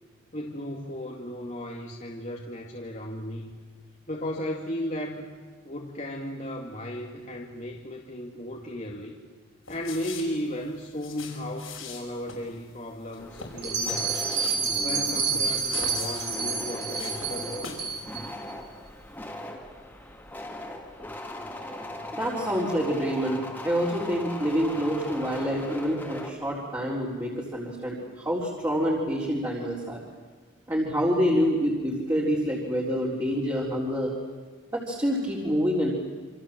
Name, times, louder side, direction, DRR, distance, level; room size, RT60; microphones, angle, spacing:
voice 1, 0.3-3.5 4.1-5.3 5.6-9.1 9.7-14.3 14.8-17.8, equal, 35° left, -1 dB, 2.2 m, -35 dB
sound 1, 9.7-18.0 18.2-18.3, left 5 dB, 80° left, 5.9 m, -43 dB
sound 2, 13.2-26.3, left 1 dB, 10° left, 2.8 m, -39 dB
Bell, 13.6-18.2, right 5 dB, 55° right, 5.6 m, -29 dB
voice 2, 22.1-30.0 30.7-34.1 34.7-35.9, equal, 15° right, -5 dB, 4.0 m, -27 dB
28.0 x 26.5 x 7.6 m, 1.4 s
head